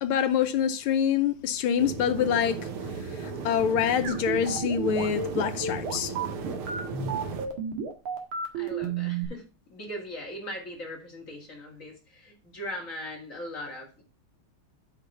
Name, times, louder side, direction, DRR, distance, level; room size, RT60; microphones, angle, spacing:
voice 1, 0.0-2.6 3.2-6.1, left 8 dB, 80° left, 1.6 m, -26 dB
sound 1, 1.8-7.5, right 4 dB, 90° right, 2.1 m, -36 dB
sound 2, 4.0-9.2, right 6 dB, 75° right, 2.4 m, -31 dB
voice 2, 8.5-9.4 9.7-14.0, left 1 dB, 40° left, 2.6 m, -39 dB
8.6 x 5.2 x 5.6 m
omnidirectional pair, 2.3 m